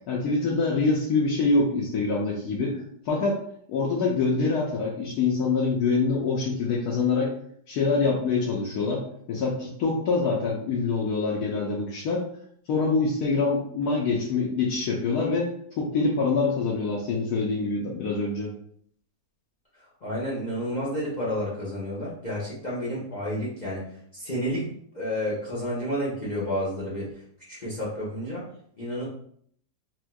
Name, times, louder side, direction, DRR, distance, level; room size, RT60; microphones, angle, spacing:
voice 1, 0.1-3.4 3.7-7.3 7.7-9.0 9.3-12.2 12.7-15.5 15.8-18.5, left 4 dB, 75° left, -3 dB, 1.1 m, -25 dB
voice 2, 19.8-23.9 24.1-27.1 27.5-28.4 28.8-29.0, equal, 40° left, -8 dB, 0.6 m, -30 dB
4.3 x 2.2 x 2.2 m, 0.63 s
omnidirectional pair, 1.8 m